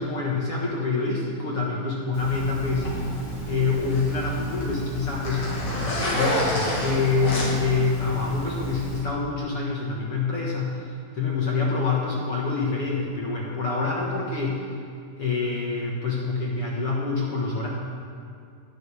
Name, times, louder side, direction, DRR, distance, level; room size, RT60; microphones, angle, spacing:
voice 1, 0.0-2.9 3.4-14.7 15.1-17.7, left 4 dB, 55° left, -4 dB, 1.8 m, -26 dB
Zipper (clothing), 2.1-9.0, equal, 40° left, 3.9 m, -30 dB
21.0 x 11.5 x 3.5 m, 2.4 s
omnidirectional pair, 4.3 m